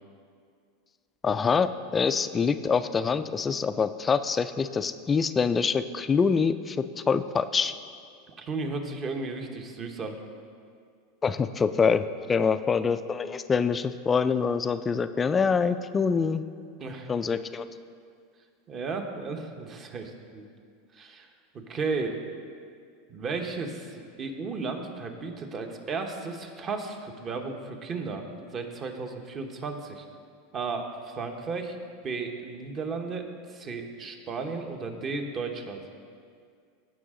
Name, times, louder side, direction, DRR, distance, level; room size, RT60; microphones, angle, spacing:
voice 1, 1.2-7.7 11.2-16.4 17.1-17.7, left 5 dB, 20° left, 12 dB, 0.4 m, -25 dB
voice 2, 8.3-10.1 12.3-12.4 16.8-17.1 18.7-20.5 20.9-21.3 21.5-22.2 23.1-30.0 30.5-31.8 32.0-35.8, right 4 dB, 35° right, 4 dB, 1.1 m, -34 dB
16.5 x 5.6 x 3.7 m, 2.2 s
supercardioid pair, 120°, 0 cm